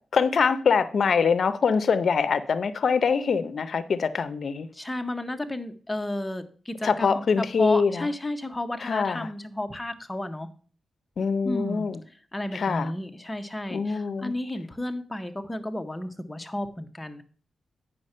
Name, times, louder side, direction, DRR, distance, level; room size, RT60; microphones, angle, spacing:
voice 1, 0.1-4.7 6.8-8.1 8.8-9.3 11.2-12.0 12.5-12.9 13.7-14.3, left 5 dB, 50° left, 0.6 m, -24 dB
voice 2, 4.7-10.5 11.4-11.9 12.3-17.2, left 1 dB, 10° left, 0.7 m, -32 dB
9.2 x 5.7 x 5.4 m
wide cardioid pair, 165°, 0 cm